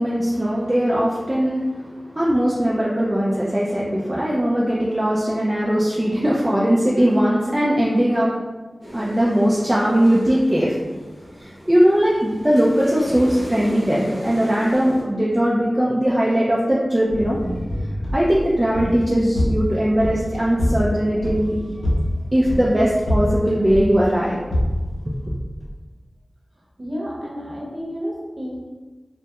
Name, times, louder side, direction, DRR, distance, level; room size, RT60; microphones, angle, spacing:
voice 1, 0.0-8.3 8.9-10.7 11.4-17.4 18.1-21.6 22.3-24.4 25.3-25.4, equal, 20° right, -6 dB, 0.3 m, -19 dB
sound 1, 8.8-15.0, equal, 5° left, 0.8 m, -37 dB
sound 2, 17.1-25.7, left 1 dB, 85° left, 0.6 m, -26 dB
voice 2, 26.8-28.7, equal, 40° right, -5 dB, 0.7 m, -31 dB
2.2 x 2.0 x 2.8 m, 1.3 s
wide cardioid pair, 65°, 0 cm